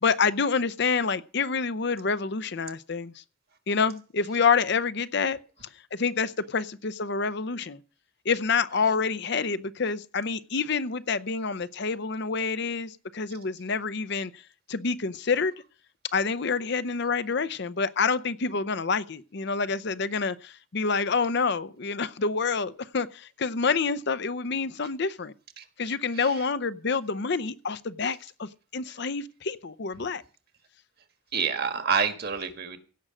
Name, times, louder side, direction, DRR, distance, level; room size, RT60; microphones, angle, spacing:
voice 1, 0.0-3.1 3.7-5.4 5.9-7.8 8.2-14.4 14.7-15.5 16.1-25.3 25.8-30.2, left 5 dB, 55° left, 0.7 m, -27 dB
voice 2, 31.3-32.8, right 6 dB, 50° right, 1.6 m, -27 dB
16.5 x 6.3 x 7.6 m
head